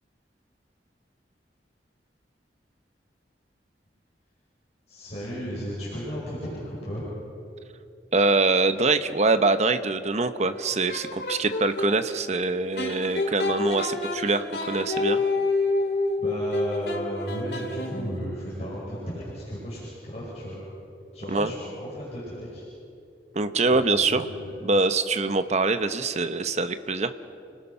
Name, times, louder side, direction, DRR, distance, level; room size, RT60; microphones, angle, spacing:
voice 1, 4.9-7.1 16.2-20.6 21.1-22.6 23.7-23.8 24.1-24.6, equal, 40° left, -7 dB, 5.6 m, -34 dB
voice 2, 8.1-15.2 21.3-21.5 23.3-24.3 24.6-27.1, right 3 dB, 40° right, 10 dB, 0.9 m, -24 dB
sound 1, 10.5-11.9 12.8-18.2, left 2 dB, 65° left, 2.8 m, -28 dB
29.5 x 19.0 x 5.7 m, 2.7 s
head